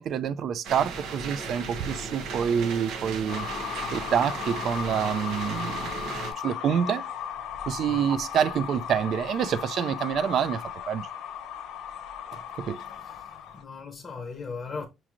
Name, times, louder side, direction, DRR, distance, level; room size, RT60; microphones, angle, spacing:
voice 1, 0.0-3.5 3.9-6.1 6.4-7.0 7.7-11.1 12.3-12.8, right 8 dB, 50° right, 0.3 m, -27 dB
sound 1, 0.6-6.3, right 4 dB, 90° right, 0.9 m, -36 dB
sound 2, 3.3-13.6, left 9 dB, 80° left, 0.8 m, -36 dB
voice 2, 7.6-8.1 12.7-14.9, left 4 dB, 20° left, 0.7 m, -39 dB
5.8 x 3.0 x 2.4 m
cardioid pair, 165°, 0 cm